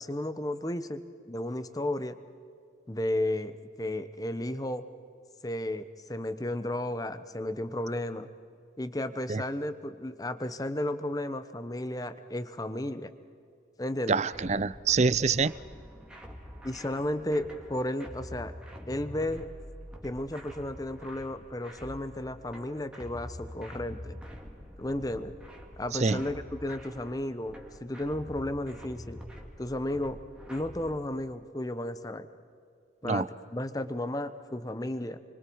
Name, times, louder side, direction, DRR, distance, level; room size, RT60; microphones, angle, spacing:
voice 1, 0.0-2.2 2.9-4.8 5.4-8.3 8.8-13.1 13.8-14.2 16.6-18.5 18.9-19.4 20.0-24.2 24.8-25.3 25.8-29.2 29.6-30.2 30.5-32.3 33.0-35.2, left 1 dB, 20° left, 11 dB, 1.0 m, -33 dB
voice 2, 14.1-15.5 25.9-26.2 33.0-33.3, right 4 dB, 40° right, 19 dB, 0.5 m, -26 dB
sound 1, 14.3-30.9, equal, 5° right, 2.3 m, -46 dB
30.0 x 24.5 x 4.7 m, 2.3 s
head